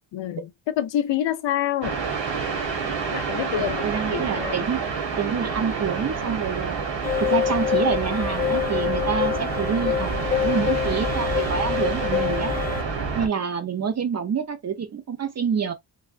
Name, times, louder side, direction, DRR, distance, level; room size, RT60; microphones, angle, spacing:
voice 1, 0.1-2.0 3.1-4.6, left 11 dB, 80° left, 0.6 m, -27 dB
sound 1, 1.8-13.3, right 5 dB, 80° right, 1.2 m, -28 dB
voice 2, 3.5-4.8 5.2-6.8 7.2-12.5 13.1-15.7, right 7 dB, 35° right, 0.5 m, -27 dB
sound 2, 7.0-12.8, left 9 dB, 20° left, 0.4 m, -26 dB
3.4 x 2.2 x 2.3 m
wide cardioid pair, 160°, 44 cm